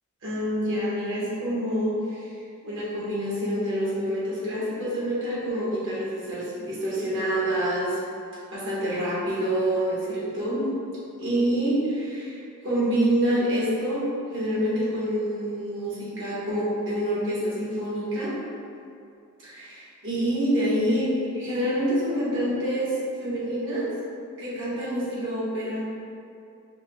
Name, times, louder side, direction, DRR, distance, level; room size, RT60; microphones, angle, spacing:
voice 1, 0.2-2.3 2.6-8.0 8.5-10.7 11.2-14.0 14.3-18.4 19.4-23.9 24.4-25.8, equal, 60° right, -9 dB, 1.4 m, -27 dB
4.9 x 2.3 x 3.5 m, 2.5 s
head